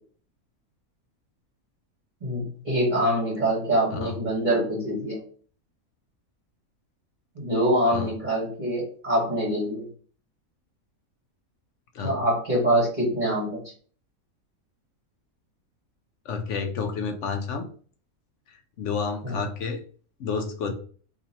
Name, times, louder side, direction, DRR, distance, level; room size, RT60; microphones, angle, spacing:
voice 1, 2.2-5.2 7.3-9.9 12.0-13.6 19.2-19.4, right 1 dB, 35° right, -6 dB, 1.4 m, -25 dB
voice 2, 16.3-17.7 18.5-19.8 20.2-20.7, left 5 dB, 70° left, 6 dB, 0.8 m, -30 dB
2.8 x 2.8 x 4.1 m, 0.43 s
omnidirectional pair, 1.5 m